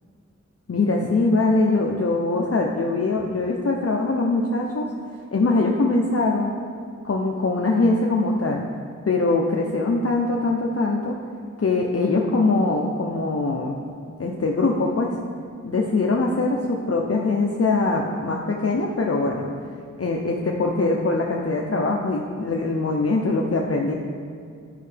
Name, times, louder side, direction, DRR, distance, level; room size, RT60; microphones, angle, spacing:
voice 1, 0.7-4.9 5.3-6.5 7.0-8.6 9.1-11.2 11.6-13.7 14.2-15.1 15.7-19.4 20.0-23.9, left 3 dB, 50° left, 0 dB, 0.7 m, -22 dB
10.5 x 5.5 x 3.4 m, 2.2 s
wide cardioid pair, 55°, 30 cm